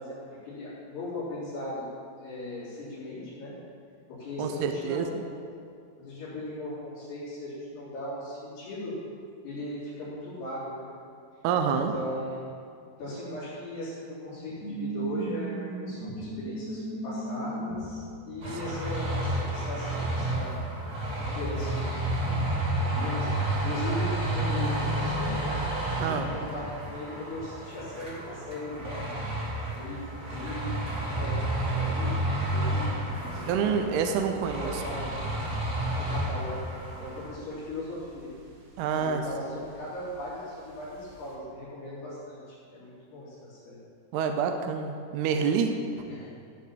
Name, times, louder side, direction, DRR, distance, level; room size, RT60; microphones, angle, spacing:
voice 1, 0.0-1.9 2.2-3.5 4.2-5.4 6.0-9.0 9.4-10.9 11.7-12.4 13.0-20.6 21.2-22.4 22.7-25.6 26.0-29.2 29.7-32.1 32.5-32.9 33.3-33.8 34.6-35.1 36.0-36.6 37.0-38.3 39.0-43.8 46.1-46.3, left 1 dB, 65° left, -13 dB, 5.7 m, -38 dB
voice 2, 4.4-5.1 11.4-11.9 26.0-26.3 33.5-34.8 38.8-39.2 44.1-45.8, right 6 dB, 80° right, 6 dB, 2.5 m, -27 dB
sound 1, 14.3-19.9 20.2-20.9 21.2-21.3 22.2-23.0 23.8-27.1 27.9-28.3, equal, 40° left, 3.4 m, -37 dB
sound 2, 18.4-37.3, right 1 dB, 30° right, 2.3 m, -31 dB
sound 3, 28.8-41.4, right 1 dB, 55° right, 2.1 m, -48 dB
15.0 x 6.6 x 7.5 m, 2.4 s
omnidirectional pair, 5.1 m